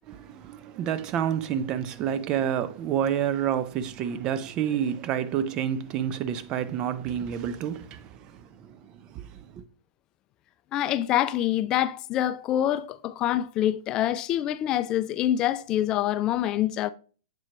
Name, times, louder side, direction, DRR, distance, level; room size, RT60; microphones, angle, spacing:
voice 1, 0.1-8.8 9.1-9.6, right 9 dB, 35° right, 0.6 m, -29 dB
voice 2, 10.7-16.9, left 12 dB, 35° left, 0.3 m, -26 dB
7.6 x 4.3 x 2.9 m
hypercardioid pair, 115°, 2 cm